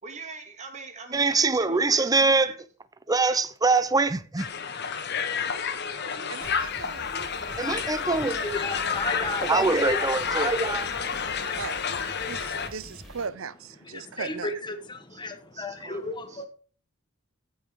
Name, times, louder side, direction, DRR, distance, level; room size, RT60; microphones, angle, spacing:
voice 1, 0.0-2.6 3.2-4.1 9.0-10.0 15.1-15.2 15.5-16.4, right 4 dB, 35° right, 2.2 m, -42 dB
voice 2, 1.1-2.5 3.1-4.4 7.6-8.4 9.4-10.9, right 3 dB, 20° right, 0.6 m, -23 dB
Crowd, 4.4-12.7, left 6 dB, 55° left, 1.2 m, -30 dB
voice 3, 6.3-7.1 8.1-8.6 11.6-11.8 12.3-14.6, right 5 dB, 80° right, 0.7 m, -38 dB
sound 1, 6.4-13.3, equal, ahead, 2.8 m, -47 dB
voice 4, 8.4-9.7 11.4-11.6 13.9-16.5, left 2 dB, 20° left, 1.3 m, -34 dB
14.0 x 5.6 x 4.7 m
head